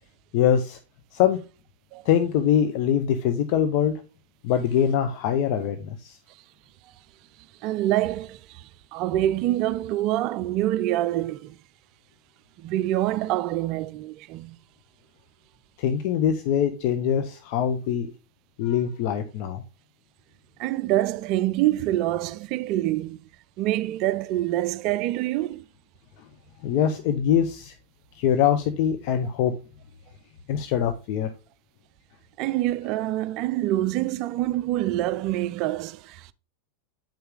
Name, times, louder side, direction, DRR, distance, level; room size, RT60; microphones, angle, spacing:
voice 1, 0.3-0.8 1.1-1.4 2.0-3.9 4.4-6.2 15.8-18.1 18.6-19.6 26.6-27.7 28.2-29.5 30.5-31.3, left 9 dB, 45° left, 0.7 m, -23 dB
voice 2, 7.6-11.6 12.6-14.6 20.6-23.3 23.6-25.6 32.4-36.3, right 14 dB, 40° right, 0.3 m, -26 dB
8.7 x 5.5 x 3.7 m
figure-of-eight pair, 90°, 0 cm